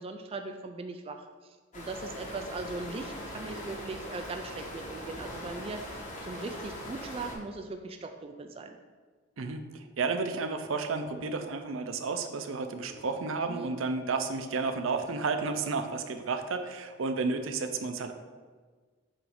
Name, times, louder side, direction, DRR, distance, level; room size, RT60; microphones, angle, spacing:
voice 1, 0.0-5.8 6.2-8.8 13.5-13.8, right 3 dB, 30° right, 5 dB, 0.3 m, -39 dB
Wind in trees beside river, 1.7-7.3, left 1 dB, 40° left, 1.2 m, -41 dB
voice 2, 9.4-18.1, right 4 dB, 75° right, 7 dB, 0.5 m, -32 dB
7.6 x 2.6 x 4.9 m, 1.4 s
head